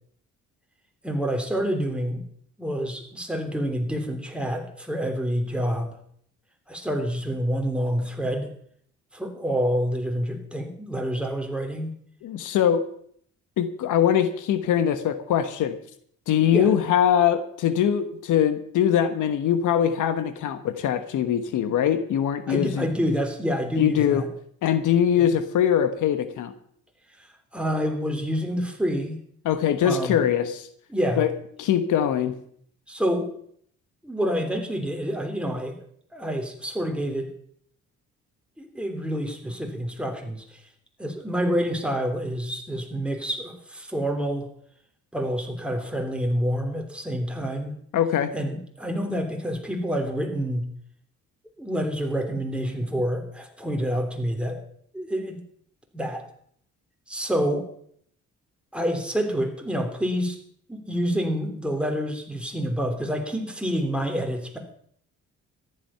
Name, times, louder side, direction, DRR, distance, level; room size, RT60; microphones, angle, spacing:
voice 1, 1.0-2.2 2.6-6.0 6.7-8.5 9.1-11.9 16.5-16.7 22.5-24.3 25.2-25.3 27.2-27.3 27.5-29.2 29.8-30.2 30.9-31.2 32.9-33.3 34.0-35.8 36.1-37.3 38.6-40.6 41.0-44.5 45.1-47.7 48.3-50.7 51.6-54.6 54.9-55.4 55.9-56.2 57.1-57.7 58.7-60.4 60.7-64.6, equal, 5° right, 3 dB, 3.2 m, -27 dB
voice 2, 12.2-12.9 13.6-15.8 16.3-22.9 23.8-24.2 24.6-26.5 29.4-30.6 31.2-31.3 31.6-32.4 47.9-48.3, left 9 dB, 80° left, 11 dB, 1.3 m, -22 dB
14.0 x 11.5 x 5.7 m, 0.63 s
cardioid pair, 90°, 30 cm